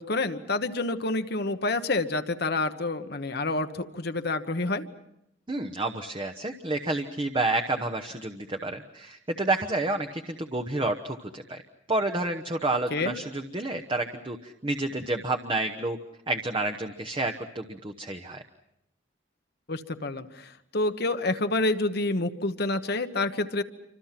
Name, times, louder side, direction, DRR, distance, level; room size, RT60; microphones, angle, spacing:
voice 1, 0.0-4.8 12.9-13.2 19.7-23.6, left 2 dB, 55° left, 8 dB, 1.2 m, -28 dB
voice 2, 5.5-11.6 11.9-16.0 16.3-18.4, right 2 dB, 25° right, 5 dB, 1.0 m, -29 dB
28.0 x 25.5 x 5.9 m, 0.80 s
head